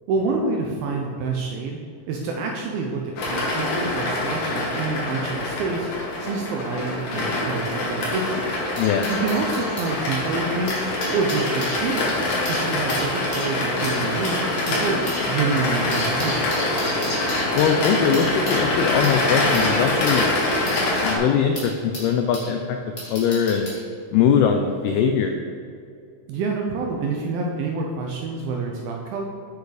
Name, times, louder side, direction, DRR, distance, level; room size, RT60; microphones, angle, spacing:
voice 1, 0.1-1.8 2.1-5.9 6.2-8.4 9.1-10.8 11.1-14.4 14.7-16.5 26.3-29.3, right 4 dB, 80° right, 0 dB, 2.2 m, -27 dB
sound 1, 3.2-21.2, left 2 dB, 55° left, 2.8 m, -25 dB
sound 2, 8.0-9.9 10.5-22.5 23.0-23.8 24.7-24.9, left 1 dB, 25° left, 1.2 m, -35 dB
voice 2, 8.8-9.1 17.6-20.3 21.0-22.8 23.1-23.7 24.1-25.3, left 7 dB, 85° left, 4 dB, 2.2 m, -21 dB
8.3 x 6.6 x 5.0 m, 2.4 s
omnidirectional pair, 5.1 m